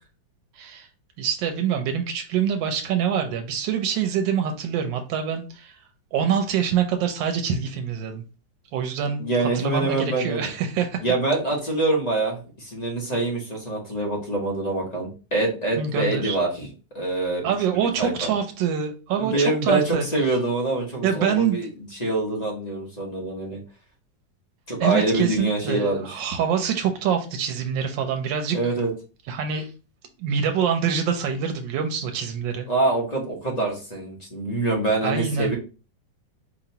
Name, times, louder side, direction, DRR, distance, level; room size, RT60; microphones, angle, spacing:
voice 1, 0.6-0.9 1.2-5.8 6.1-8.2 8.7-11.0 15.8-16.4 17.4-20.0 21.0-21.6 24.8-28.6 29.3-29.7 30.2-32.7 35.0-35.5, right 7 dB, 90° right, 5 dB, 1.3 m, -25 dB
voice 2, 9.2-10.5 11.0-16.7 16.9-17.4 18.0-18.3 19.2-21.7 22.0-23.6 24.7-26.2 28.5-28.9 32.7-35.5, right 2 dB, 30° left, -2 dB, 0.8 m, -25 dB
4.5 x 3.0 x 2.7 m, 0.34 s
omnidirectional pair, 2.0 m